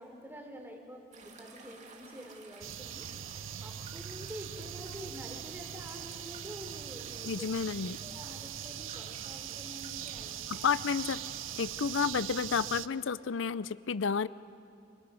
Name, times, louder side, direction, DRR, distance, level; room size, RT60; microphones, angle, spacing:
voice 1, 0.0-3.1 3.6-7.5 8.0-10.7, equal, 10° right, 2 dB, 3.4 m, -47 dB
sound 1, 1.1-12.1, right 4 dB, 35° right, 2.5 m, -53 dB
sound 2, 2.6-12.9, right 10 dB, 80° right, 0.7 m, -41 dB
voice 2, 7.2-8.0 10.5-11.2 11.6-14.3, left 6 dB, 70° left, 17 dB, 0.5 m, -31 dB
29.5 x 27.5 x 6.3 m, 2.5 s
head